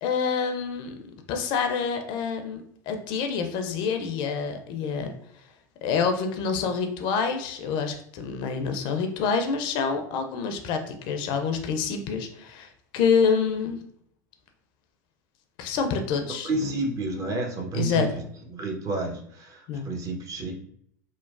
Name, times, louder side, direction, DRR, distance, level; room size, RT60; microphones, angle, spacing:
voice 1, 0.0-0.9 1.3-5.1 5.8-13.8 15.6-16.7 17.7-18.1 19.7-19.9, left 6 dB, 50° left, 6 dB, 0.4 m, -27 dB
voice 2, 16.4-18.2 18.5-20.5, right 3 dB, 35° right, 2 dB, 0.7 m, -30 dB
3.0 x 2.1 x 2.4 m, 0.68 s
hypercardioid pair, 85°, 10 cm